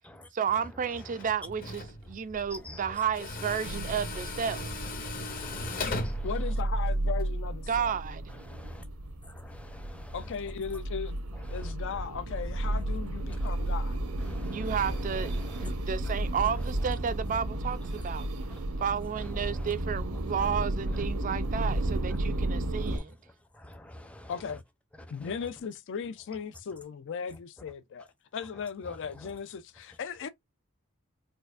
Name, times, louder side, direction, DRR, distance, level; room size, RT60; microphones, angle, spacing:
voice 1, 0.3-4.7 7.7-8.2 14.5-18.3 18.8-23.2, right 7 dB, 35° right, 0.4 m, -32 dB
Tools, 1.0-7.2, left 2 dB, 40° left, 0.9 m, -38 dB
voice 2, 2.5-2.8 5.3-6.3 8.5-8.8 9.2-10.2 11.5-11.7 14.2-14.8 15.4-15.7 19.5-19.7 23.5-24.3 25.2-25.3, left 1 dB, 5° left, 0.6 m, -47 dB
sound 1, 3.6-23.0, right 1 dB, 80° right, 0.9 m, -33 dB
voice 3, 6.2-8.0 10.1-11.2 11.5-14.0 24.3-24.6 25.1-30.3, left 6 dB, 60° left, 0.4 m, -37 dB
4.4 x 2.4 x 2.4 m
head